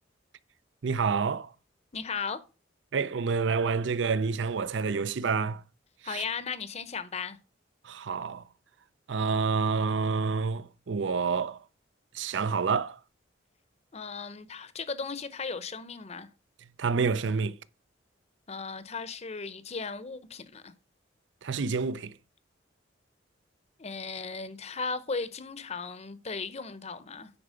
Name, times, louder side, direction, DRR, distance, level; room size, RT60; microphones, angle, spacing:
voice 1, 0.8-1.5 2.9-5.6 6.0-6.2 7.8-8.4 9.1-11.6 12.1-13.0 16.8-17.6 21.4-22.1, right 5 dB, 70° right, 0.5 m, -28 dB
voice 2, 1.9-2.4 6.0-7.4 13.9-16.3 18.5-20.7 23.8-27.3, left 5 dB, 35° left, 0.7 m, -36 dB
9.8 x 4.8 x 5.0 m
head